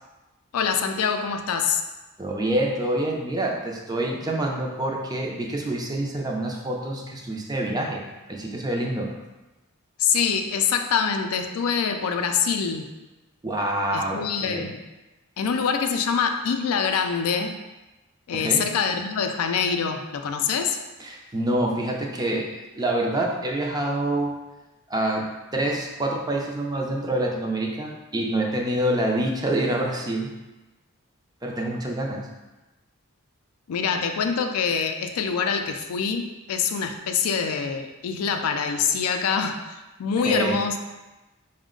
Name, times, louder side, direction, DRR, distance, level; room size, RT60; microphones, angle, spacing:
voice 1, 0.5-1.8 10.0-12.9 13.9-14.8 15.4-17.6 18.3-20.8 33.7-40.8, left 6 dB, 85° left, 6 dB, 0.4 m, -25 dB
voice 2, 2.2-8.0 8.3-9.1 13.4-14.7 18.3-18.6 21.0-24.4 24.9-25.3 25.5-30.3 31.4-32.3 40.2-40.6, right 1 dB, 20° right, 0 dB, 0.5 m, -26 dB
5.0 x 2.1 x 3.7 m, 1.1 s
head